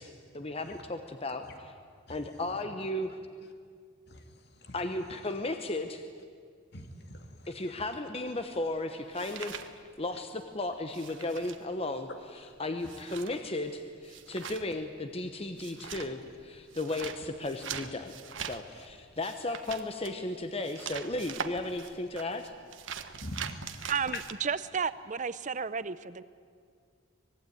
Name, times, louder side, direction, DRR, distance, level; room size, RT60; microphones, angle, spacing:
voice 1, 0.0-1.7 2.1-3.2 4.7-6.0 7.5-9.6 10.0-18.1 18.4-22.5, left 2 dB, 30° left, 1.1 m, -35 dB
voice 2, 6.7-7.7 23.2-24.2, left 2 dB, 55° left, 2.4 m, -43 dB
sound 1, 8.3-10.4 10.7-24.3, right 7 dB, 70° right, 1.4 m, -43 dB
voice 3, 23.9-26.2, right 6 dB, 40° right, 0.6 m, -32 dB
25.0 x 20.5 x 9.3 m
head